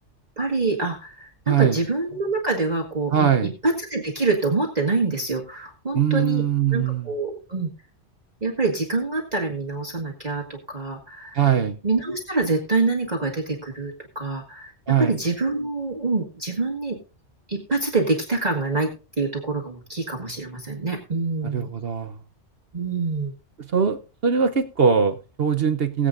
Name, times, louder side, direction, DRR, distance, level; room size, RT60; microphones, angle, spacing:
voice 1, 0.4-3.3 3.6-6.4 6.7-7.7 8.4-11.4 11.8-14.7 15.0-17.0 17.5-18.9 19.2-21.7 22.7-23.3, right 3 dB, 35° right, -1 dB, 1.8 m, -26 dB
voice 2, 1.5-1.8 3.1-3.5 5.9-7.1 11.3-11.8 14.9-15.2 21.5-22.2 23.7-26.1, right 7 dB, 55° right, 8 dB, 1.0 m, -21 dB
20.5 x 8.1 x 2.6 m, 0.34 s
omnidirectional pair, 1.2 m